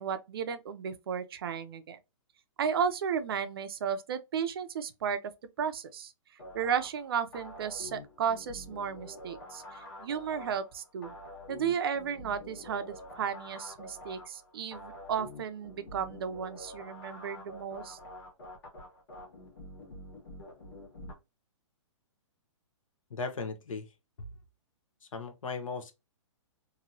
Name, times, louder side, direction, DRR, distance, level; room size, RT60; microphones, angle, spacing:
voice 1, 0.0-2.0 2.6-5.2 5.6-6.1 6.5-11.1 11.5-18.0, right 7 dB, 45° right, 0.4 m, -34 dB
sound 1, 6.4-21.1, left 1 dB, 50° left, 1.4 m, -47 dB
voice 2, 23.1-23.8 24.2-24.3 25.1-25.9, left 4 dB, 85° left, 0.9 m, -37 dB
2.9 x 2.6 x 2.6 m
hypercardioid pair, 165°, 17 cm